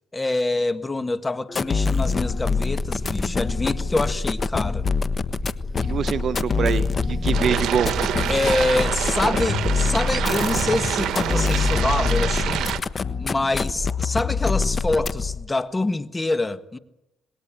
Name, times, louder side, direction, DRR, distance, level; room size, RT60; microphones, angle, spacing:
voice 1, 0.1-4.9 8.3-12.7 13.2-16.8, left 2 dB, 20° left, 1.5 m, -25 dB
sound 1, 1.5-15.5, left 4 dB, 40° left, 1.2 m, -25 dB
sound 2, 1.7-2.4 2.7-4.9 5.3-8.2, right 1 dB, 10° right, 1.6 m, -38 dB
voice 2, 5.8-7.9, right 7 dB, 55° right, 1.2 m, -25 dB
sound 3, 7.3-12.8, right 10 dB, 75° right, 1.5 m, -26 dB
27.0 x 20.0 x 9.0 m
cardioid pair, 90°, 0 cm